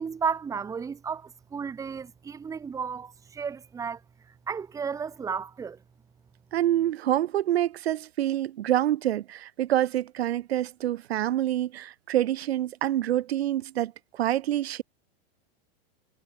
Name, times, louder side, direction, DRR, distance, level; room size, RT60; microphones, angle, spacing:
voice 1, 0.0-4.0 4.5-5.8, right 6 dB, 10° right, 2.5 m, -33 dB
voice 2, 6.5-14.8, right 12 dB, 80° right, 3.2 m, -27 dB
supercardioid pair, 170°, 31 cm